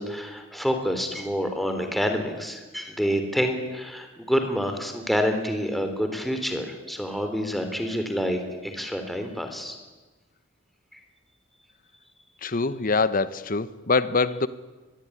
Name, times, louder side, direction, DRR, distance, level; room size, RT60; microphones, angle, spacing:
voice 1, 0.0-9.8 10.9-11.0, equal, ahead, 3.5 m, -28 dB
voice 2, 12.4-14.5, left 4 dB, 45° left, 1.0 m, -24 dB
24.5 x 21.5 x 9.9 m
head